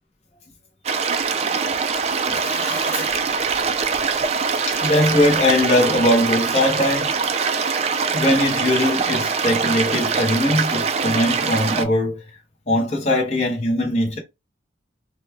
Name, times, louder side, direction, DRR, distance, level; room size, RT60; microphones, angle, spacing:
sound 1, 0.8-11.8, right 5 dB, 35° right, 0.3 m, -23 dB
voice 1, 2.3-3.1 4.0-4.1 4.7-7.1 8.1-12.2 12.7-14.2, left 1 dB, 35° left, 0.7 m, -20 dB
3.0 x 2.2 x 3.3 m
head